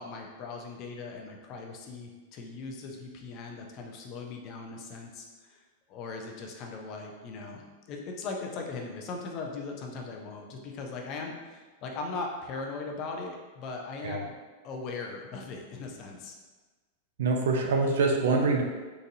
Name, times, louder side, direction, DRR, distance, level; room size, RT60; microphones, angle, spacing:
voice 1, 0.0-5.6 5.9-7.6 7.9-14.4 14.6-16.3, left 3 dB, 30° left, 1 dB, 0.4 m, -39 dB
voice 2, 17.2-18.6, right 3 dB, 75° right, 2 dB, 0.5 m, -25 dB
3.8 x 2.6 x 2.7 m, 1.3 s
supercardioid pair, 175°, 0 cm